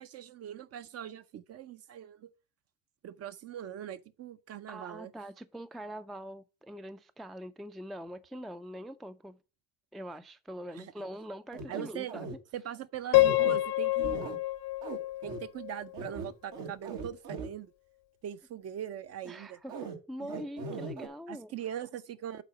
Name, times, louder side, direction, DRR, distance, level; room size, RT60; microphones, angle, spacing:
voice 1, 0.0-2.3 3.0-5.1 10.7-10.9 11.7-12.1 12.5-14.2 15.2-17.7 18.2-19.6 20.2-20.4 21.3-22.4, right 10 dB, 45° right, 0.7 m, -41 dB
voice 2, 4.7-9.4 9.9-12.3 19.3-21.5, equal, ahead, 0.3 m, -43 dB
sound 1, 11.5-12.3 13.2-13.6 14.0-14.4 14.8-15.0 15.2-15.4 15.9-17.5 19.7-20.0 20.3-21.1, right 4 dB, 70° right, 1.7 m, -39 dB
Piano, 13.1-16.1, left 18 dB, 65° left, 0.7 m, -27 dB
8.3 x 4.0 x 5.0 m
supercardioid pair, 80°, 36 cm